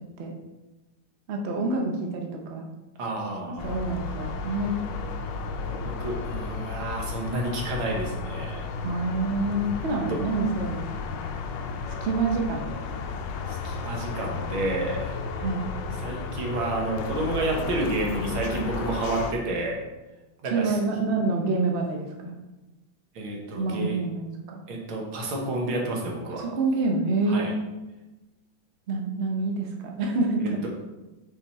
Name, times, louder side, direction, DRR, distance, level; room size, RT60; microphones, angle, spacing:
voice 1, 1.3-2.7 3.4-4.8 8.8-11.3 12.0-13.0 15.4-15.7 20.4-22.3 23.5-24.6 26.4-27.6 28.9-30.7, right 3 dB, 50° right, 2 dB, 0.8 m, -27 dB
voice 2, 3.0-3.7 5.6-8.7 10.1-10.2 13.5-15.1 16.0-19.8 20.4-20.8 23.2-24.0 24.7-26.4 27.3-27.5, right 2 dB, 85° right, -1 dB, 2.0 m, -30 dB
sound 1, 3.6-19.3, left 4 dB, 70° left, 1.2 m, -33 dB
5.7 x 4.7 x 4.1 m, 1.1 s
omnidirectional pair, 2.2 m